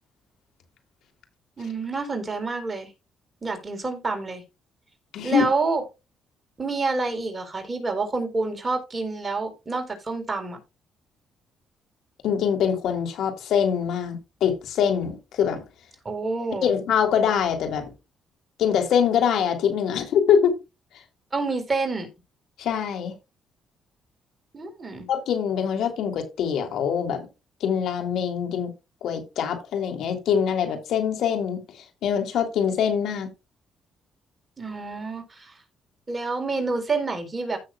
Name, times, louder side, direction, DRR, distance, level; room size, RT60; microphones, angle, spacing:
voice 1, 1.6-2.9 3.4-4.4 5.2-5.8 6.6-10.6 16.0-16.7 21.3-22.1 24.5-25.1 34.6-35.5 36.1-37.6, right 3 dB, 25° right, 4.1 m, -28 dB
voice 2, 5.1-5.5 12.2-15.6 16.6-17.9 18.6-20.6 22.6-23.1 25.1-27.3 27.6-28.7 29.0-33.3, left 8 dB, 75° left, 3.1 m, -24 dB
15.0 x 6.7 x 2.4 m
cardioid pair, 90°, 0 cm